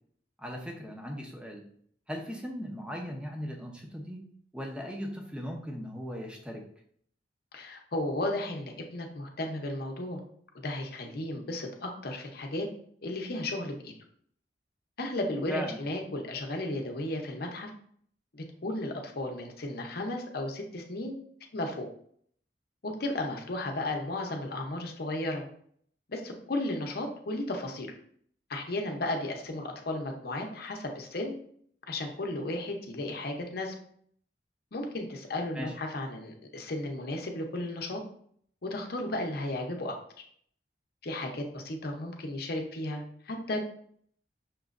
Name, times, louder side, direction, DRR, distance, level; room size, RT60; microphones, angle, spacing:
voice 1, 0.4-1.6 2.1-4.2 4.5-6.6 15.5-15.8 35.5-35.7, equal, 5° right, 1 dB, 0.7 m, -38 dB
voice 2, 7.5-10.2 10.5-12.7 13.0-13.9 15.0-17.7 18.3-21.2 21.5-21.9 22.8-25.4 26.1-27.9 28.5-31.4 31.9-33.7 34.7-38.0 38.6-39.9 41.0-43.6, left 1 dB, 60° left, 3 dB, 0.7 m, -34 dB
5.9 x 3.0 x 2.5 m, 0.62 s
head